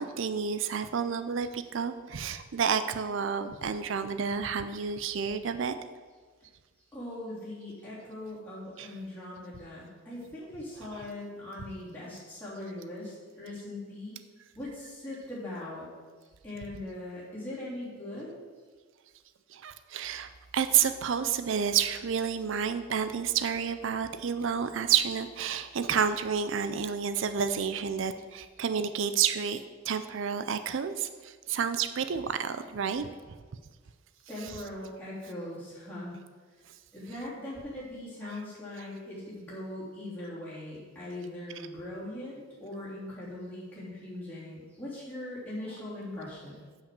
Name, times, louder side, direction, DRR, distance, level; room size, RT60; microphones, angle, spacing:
voice 1, 0.0-5.8 8.8-8.9 10.9-11.0 19.5-29.6 29.9-33.1 34.4-34.5 38.3-38.4, right 7 dB, 65° right, 10 dB, 0.4 m, -30 dB
voice 2, 6.9-14.2 14.5-15.9 16.4-18.3 34.3-36.1 36.9-46.6, left 1 dB, 10° left, -9 dB, 3.2 m, -40 dB
7.4 x 5.9 x 6.8 m, 1.4 s
head